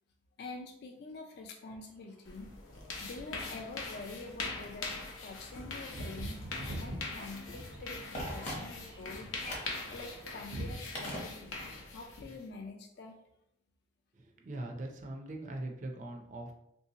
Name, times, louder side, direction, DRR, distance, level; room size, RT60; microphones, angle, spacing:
voice 1, 0.4-2.5 3.0-6.4 6.8-8.0 8.3-9.3 9.9-13.2, left 3 dB, 55° left, 2 dB, 0.3 m, -46 dB
sound 1, 1.7-2.0 2.4-10.8, right 1 dB, 90° right, 0.8 m, -46 dB
sound 2, 2.2-12.5, left 3 dB, 90° left, 0.7 m, -43 dB
Telephone, 8.1-9.0 9.4-9.8 11.0-11.8 12.1-12.2, left 1 dB, 35° left, 0.8 m, -41 dB
voice 2, 14.2-16.5, right 1 dB, 40° right, 2 dB, 0.4 m, -41 dB
3.2 x 2.7 x 2.7 m, 0.80 s
head